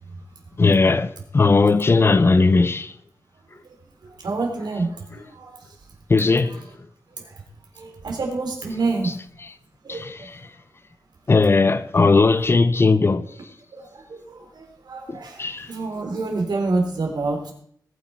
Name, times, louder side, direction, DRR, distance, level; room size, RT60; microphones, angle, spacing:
voice 1, 0.6-2.9 6.1-6.6 9.0-9.2 9.9-10.4 11.3-13.3 15.1-15.7, left 3 dB, 35° left, 0.6 m, -18 dB
voice 2, 4.2-5.6 7.2-7.3 7.8-9.1 9.8-10.1 13.7-13.8 14.1-15.4 15.7-17.5, right 3 dB, 90° right, 3.7 m, -27 dB
20.0 x 9.4 x 4.5 m
wide cardioid pair, 155°, 7 cm